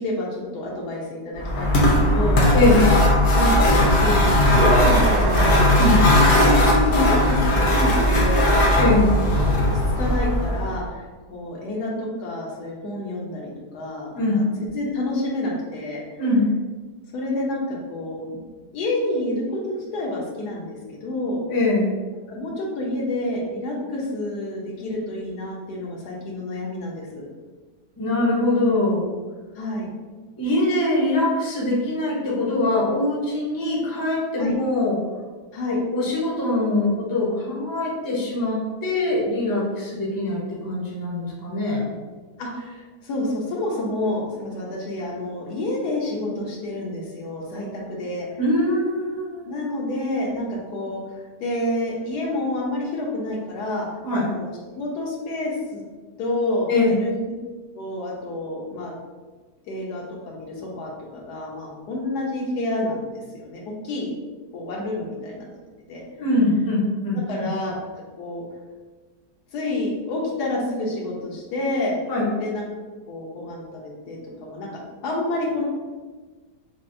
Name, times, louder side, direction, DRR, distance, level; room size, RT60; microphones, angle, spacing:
voice 1, 0.0-2.5 3.3-5.7 6.4-8.9 9.2-9.5 10.0-11.0 11.3-16.0 17.1-18.4 18.7-21.4 22.3-27.3 29.5-29.9 34.4-34.5 35.5-35.8 42.4-48.3 49.5-51.0 51.4-53.9 54.3-55.8 56.2-57.1 57.7-58.9 59.7-64.1 64.5-65.5 65.9-66.0 67.3-67.7 68.2-68.4 69.5-72.0 72.4-72.7 73.1-74.7 75.0-75.7, left 1 dB, 80° left, -2 dB, 1.3 m, -28 dB
sound 1, 1.4-10.8, left 1 dB, 55° left, 0.8 m, -18 dB
sound 2, 4.5-9.6, right 2 dB, 85° right, 1.4 m, -30 dB
voice 2, 8.8-9.1 14.1-14.4 16.2-16.5 21.5-21.9 28.0-29.1 30.4-35.0 35.7-41.9 48.4-49.4 54.0-54.3 56.7-56.9 66.2-67.5 72.1-72.3, left 2 dB, 20° left, -4 dB, 0.5 m, -22 dB
5.7 x 2.1 x 2.6 m, 1.4 s
omnidirectional pair, 1.7 m